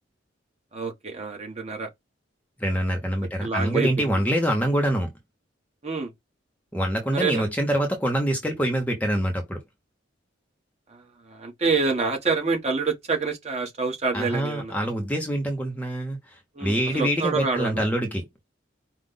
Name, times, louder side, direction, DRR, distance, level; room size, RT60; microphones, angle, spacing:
voice 1, 0.7-1.9 3.2-4.1 5.8-6.1 7.1-7.5 10.9-14.7 16.5-17.9, right 4 dB, 35° right, 1.4 m, -27 dB
voice 2, 2.6-5.1 6.7-9.6 14.1-18.2, equal, 10° left, 0.9 m, -25 dB
5.0 x 2.4 x 3.8 m
head